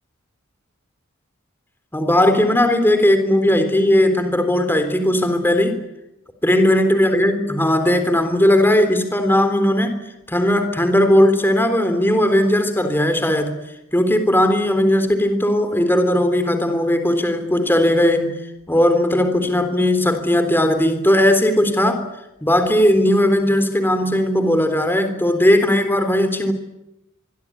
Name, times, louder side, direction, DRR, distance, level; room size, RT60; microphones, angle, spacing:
voice 1, 1.9-5.8 6.4-10.0 10.3-13.5 13.9-18.4 18.7-22.1 22.4-26.5, left 1 dB, 10° left, 8 dB, 3.6 m, -17 dB
25.0 x 24.0 x 9.8 m, 0.92 s
head